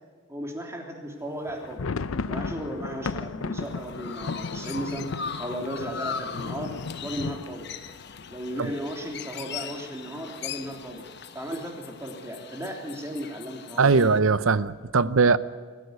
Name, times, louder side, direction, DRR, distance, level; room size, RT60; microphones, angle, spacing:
voice 1, 0.3-1.9 2.2-5.1 5.4-6.7 7.0-7.7 8.3-11.0 11.3-14.1, equal, 15° right, 1 dB, 3.2 m, -35 dB
sound 1, 1.4-9.2 9.5-9.6 9.9-10.1 10.6-11.1, left 4 dB, 85° left, 0.6 m, -35 dB
Chirp tweet, 3.6-14.2, left 6 dB, 55° left, 1.1 m, -40 dB
voice 2, 13.8-15.4, right 4 dB, 85° right, 16 dB, 0.8 m, -20 dB
22.5 x 14.5 x 9.6 m, 1.6 s
head